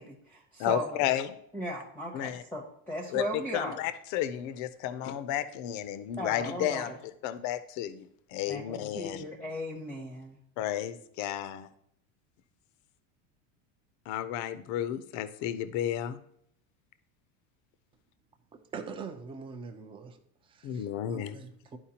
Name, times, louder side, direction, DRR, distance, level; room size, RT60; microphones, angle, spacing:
voice 1, 0.0-0.9 1.5-3.8 6.2-7.0 8.5-10.4, equal, 5° left, 1 dB, 0.8 m, -37 dB
voice 2, 0.6-1.3 2.1-2.4 3.1-6.9 7.2-9.2 10.6-11.7 14.1-16.2 20.6-21.4, left 11 dB, 45° left, 12 dB, 0.6 m, -32 dB
voice 3, 18.5-20.2 20.4-21.8, right 5 dB, 15° right, 7 dB, 0.4 m, -43 dB
11.5 x 4.6 x 2.8 m, 0.71 s
supercardioid pair, 145°, 40 cm